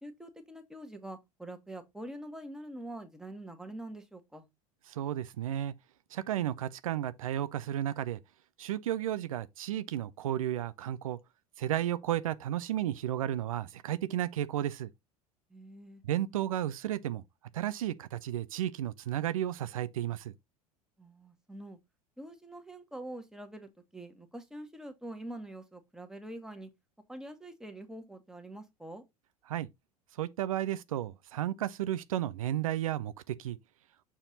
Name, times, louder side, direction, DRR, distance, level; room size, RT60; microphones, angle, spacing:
voice 1, 0.0-4.5 15.5-16.0 21.0-21.8 22.2-26.7 27.1-29.0, right 1 dB, 5° right, 1.5 m, -45 dB
voice 2, 4.9-5.7 6.1-8.2 8.6-11.2 11.6-14.9 16.0-17.2 17.5-20.3 29.5-29.7 30.2-33.6, right 12 dB, 65° right, 0.6 m, -33 dB
7.0 x 4.3 x 4.0 m
figure-of-eight pair, 75°, 19 cm